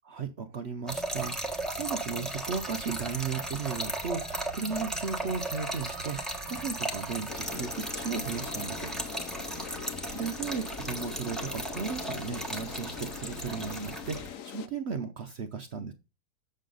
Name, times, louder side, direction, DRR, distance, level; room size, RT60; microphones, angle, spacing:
voice 1, 0.0-8.9 9.5-9.6 10.2-15.9, right 5 dB, 60° right, 7 dB, 0.7 m, -36 dB
Trickle dribble / Fill (with liquid), 0.9-14.3, right 2 dB, ahead, 1.0 m, -36 dB
sound 1, 2.4-10.2, right 2 dB, 40° left, 4.1 m, -53 dB
sound 2, 7.3-14.7, left 10 dB, 65° left, 0.9 m, -42 dB
7.4 x 6.5 x 3.8 m, 0.29 s
omnidirectional pair, 1.8 m